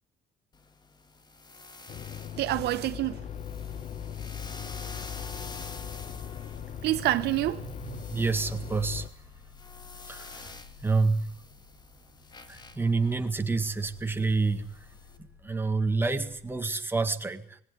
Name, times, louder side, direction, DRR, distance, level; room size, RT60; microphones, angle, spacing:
sound 1, 0.5-15.2, left 4 dB, 25° left, 2.0 m, -48 dB
sound 2, 1.9-9.1, left 8 dB, 40° left, 1.1 m, -39 dB
voice 1, 2.4-3.2 6.8-8.0, right 15 dB, 75° right, 1.0 m, -28 dB
sound 3, 3.2-16.6, left 5 dB, 80° left, 7.6 m, -53 dB
voice 2, 8.1-9.1 10.1-10.5 10.8-11.4 12.5-14.9 15.4-17.6, right 3 dB, 15° right, 1.8 m, -28 dB
20.0 x 17.5 x 9.8 m
cardioid pair, 110°, 17 cm